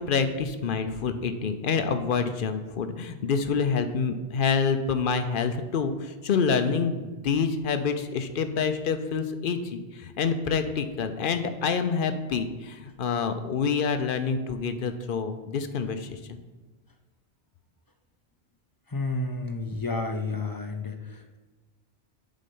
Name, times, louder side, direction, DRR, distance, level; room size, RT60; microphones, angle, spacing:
voice 1, 0.0-16.4, left 5 dB, 60° left, 9 dB, 0.7 m, -27 dB
voice 2, 18.9-21.4, left 3 dB, 35° left, 5 dB, 0.3 m, -31 dB
7.4 x 4.3 x 5.3 m, 1.3 s
omnidirectional pair, 1.1 m